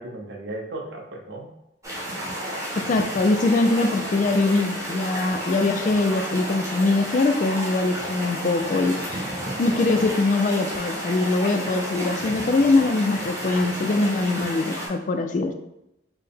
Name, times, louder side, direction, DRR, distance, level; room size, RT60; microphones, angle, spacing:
voice 1, 0.0-1.6, right 2 dB, 65° right, 2 dB, 0.6 m, -35 dB
sound 1, 1.8-14.9, equal, 15° right, 0.9 m, -31 dB
voice 2, 2.7-9.2 9.6-15.5, left 3 dB, 40° left, 7 dB, 0.3 m, -22 dB
4.5 x 2.1 x 3.4 m, 0.86 s
head